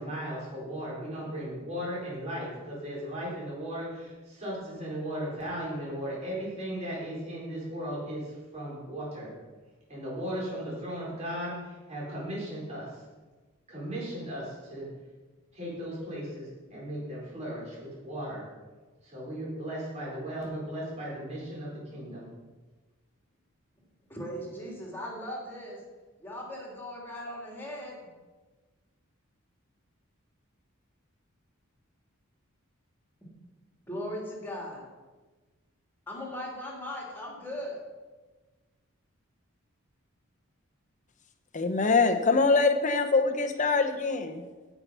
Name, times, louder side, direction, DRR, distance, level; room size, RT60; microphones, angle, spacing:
voice 1, 0.0-9.3 9.9-13.0 13.7-14.9 15.5-18.5 19.0-22.3, equal, 30° right, -6 dB, 4.0 m, -36 dB
voice 2, 24.1-25.8 26.2-28.1 33.8-34.8 36.1-37.8, equal, 10° left, -2 dB, 2.8 m, -38 dB
voice 3, 41.5-44.4, left 4 dB, 35° left, 7 dB, 0.9 m, -24 dB
15.5 x 5.9 x 5.6 m, 1.3 s
head